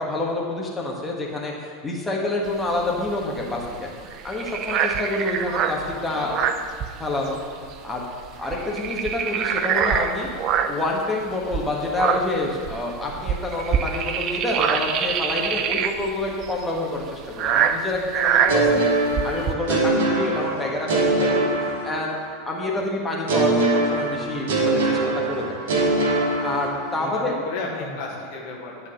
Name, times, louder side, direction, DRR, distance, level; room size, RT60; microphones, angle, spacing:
voice 1, 0.0-3.9 4.2-6.3 7.0-7.4 7.8-8.0 8.4-10.3 10.6-25.0 25.3-25.7 26.4-27.3 27.7-27.8, left 2 dB, 10° left, -3 dB, 1.5 m, -28 dB
sound 1, 2.5-7.4 7.7-7.9 8.2-10.9 11.4-19.5, right 8 dB, 40° right, 0.5 m, -25 dB
voice 2, 6.1-6.5 15.5-15.7 19.8-19.9 22.7-22.8 26.9-28.9, left 3 dB, 50° left, -1 dB, 1.4 m, -34 dB
sound 2, 18.5-22.4 23.3-27.1, right 2 dB, 60° right, 1.5 m, -23 dB
9.9 x 4.1 x 6.4 m, 2.2 s
figure-of-eight pair, 85°, 0 cm